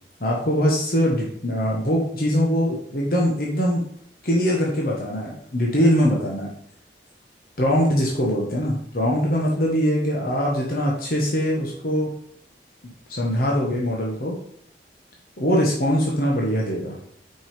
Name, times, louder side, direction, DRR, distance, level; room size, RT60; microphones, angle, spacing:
voice 1, 0.2-3.9 4.2-6.5 7.6-12.1 13.1-14.4 15.4-17.0, equal, 55° left, -3 dB, 1.5 m, -22 dB
6.3 x 5.4 x 5.2 m, 0.68 s
head